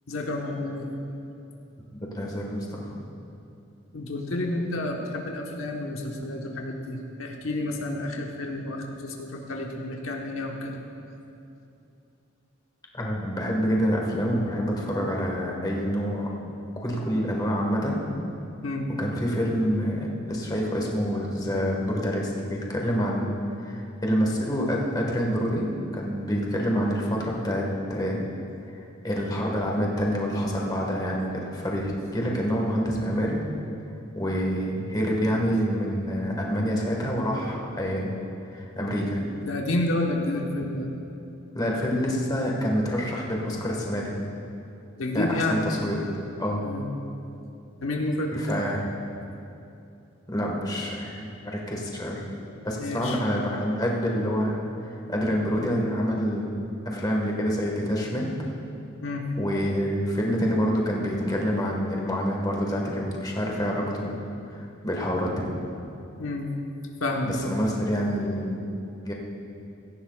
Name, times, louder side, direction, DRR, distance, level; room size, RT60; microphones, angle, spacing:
voice 1, 0.1-0.9 3.9-10.8 18.6-18.9 39.4-40.9 45.0-45.6 46.6-46.9 47.8-48.6 52.8-53.2 59.0-59.2 66.2-66.5 67.0-67.6, left 1 dB, 90° left, 1 dB, 1.2 m, -30 dB
voice 2, 1.9-2.9 12.9-16.3 16.8-18.0 19.0-23.4 23.6-28.2 29.0-33.4 34.1-38.1 38.5-39.2 41.5-44.1 45.1-46.1 46.4-46.6 48.3-48.9 50.3-52.2 52.6-54.6 54.9-56.5 56.8-58.3 59.4-64.2 64.5-65.5 67.2-68.6 69.0-69.1, equal, 20° left, -1 dB, 1.5 m, -27 dB
17.0 x 14.5 x 2.4 m, 2.7 s
head